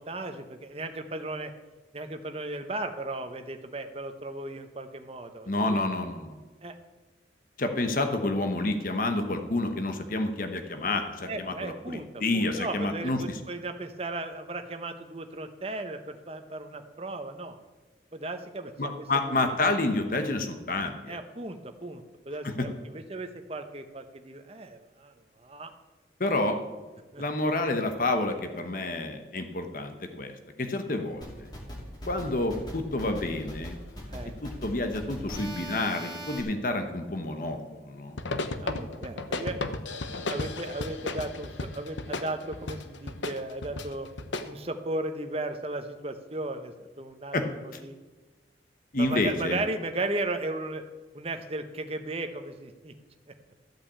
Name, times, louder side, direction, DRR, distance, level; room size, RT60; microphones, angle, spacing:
voice 1, 0.0-1.5 1.9-5.8 6.6-6.7 11.3-12.1 12.3-17.6 18.1-19.1 19.6-19.7 21.1-25.7 27.1-27.2 34.1-34.4 38.6-39.6 40.1-44.1 44.4-47.4 47.6-48.0 49.0-50.8 51.1-52.9, right 2 dB, 30° right, 7 dB, 0.9 m, -36 dB
voice 2, 5.5-6.4 7.6-13.4 18.8-21.2 22.4-22.7 26.2-26.6 27.2-30.3 30.6-31.5 32.1-33.8 34.4-38.2 47.3-47.5 48.9-49.6, left 2 dB, 45° left, 6 dB, 1.0 m, -29 dB
sound 1, 31.2-36.4, equal, 20° left, 2.7 m, -40 dB
sound 2, 38.1-44.5, left 2 dB, 80° left, 0.8 m, -35 dB
13.5 x 5.9 x 8.5 m, 1.3 s
head